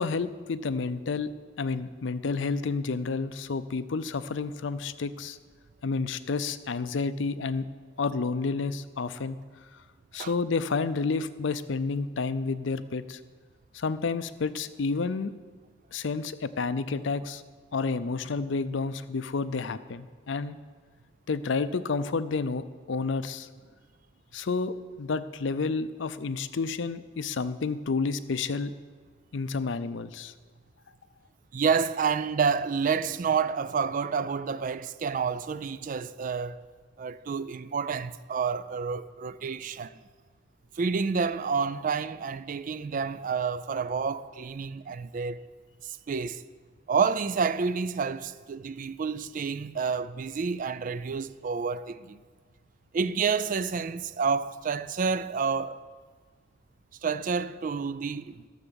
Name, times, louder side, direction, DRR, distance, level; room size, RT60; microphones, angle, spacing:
voice 1, 0.0-1.3 1.6-5.4 5.8-7.7 8.0-9.4 10.1-13.2 13.7-15.3 15.9-17.4 17.7-20.6 21.3-23.5 24.3-28.7 29.3-30.3, left 4 dB, 65° left, 0.5 m, -30 dB
voice 2, 31.5-36.6 37.0-40.0 40.8-45.4 45.8-46.4 46.9-52.2 52.9-55.8 57.0-58.4, right 5 dB, 40° right, 0.3 m, -29 dB
13.5 x 7.0 x 7.0 m
head